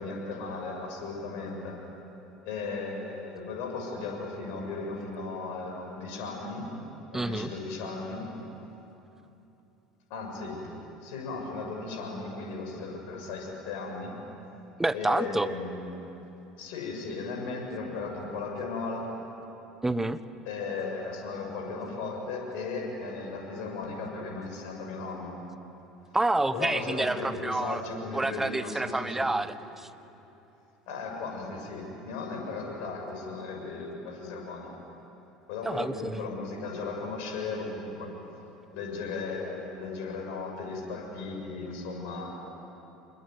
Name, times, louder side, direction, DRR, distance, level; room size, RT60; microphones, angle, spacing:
voice 1, 0.0-1.8 2.4-6.7 7.1-8.3 10.1-10.7 11.0-14.2 14.9-15.9 16.6-19.1 20.4-25.3 26.5-29.3 30.9-34.7 35.5-38.1 38.7-42.3, left 4 dB, 60° left, 1 dB, 6.8 m, -36 dB
voice 2, 7.1-7.5 14.8-15.5 19.8-20.2 26.1-27.8 28.1-29.9 35.6-36.2, right 2 dB, 10° right, 13 dB, 1.1 m, -28 dB
27.0 x 21.5 x 9.6 m, 3.0 s
figure-of-eight pair, 70°, 3 cm